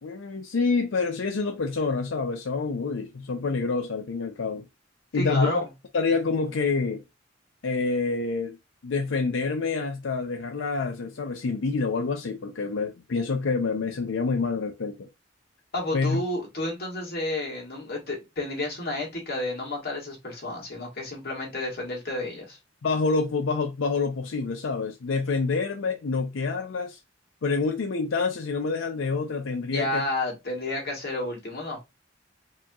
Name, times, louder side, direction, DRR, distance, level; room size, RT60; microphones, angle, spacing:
voice 1, 0.0-4.7 5.1-5.6 5.9-7.0 7.6-8.6 8.8-15.1 15.9-16.2 22.8-27.0 27.4-30.0, left 4 dB, 75° left, 0.5 m, -27 dB
voice 2, 5.1-5.7 15.7-22.6 29.7-31.8, left 2 dB, 55° left, 1.9 m, -31 dB
4.8 x 2.9 x 2.3 m
head